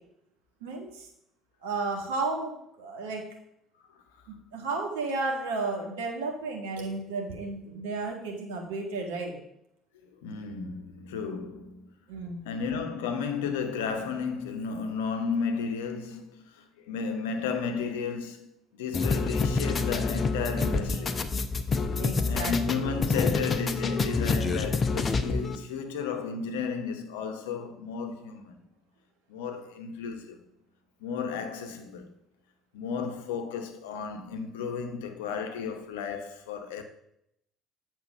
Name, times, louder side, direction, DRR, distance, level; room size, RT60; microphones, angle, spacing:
voice 1, 0.6-1.1 1.6-3.3 4.3-9.4 12.1-12.5 22.0-22.8, right 3 dB, 75° right, 1.5 m, -33 dB
voice 2, 10.2-11.9 12.4-18.5 18.7-21.2 22.3-28.6 29.3-30.5 31.0-32.1 32.7-36.8, left 5 dB, 75° left, 0.9 m, -33 dB
sound 1, 18.9-25.6, left 4 dB, 35° left, 0.7 m, -27 dB
8.1 x 4.5 x 5.4 m
hypercardioid pair, 55°, 0 cm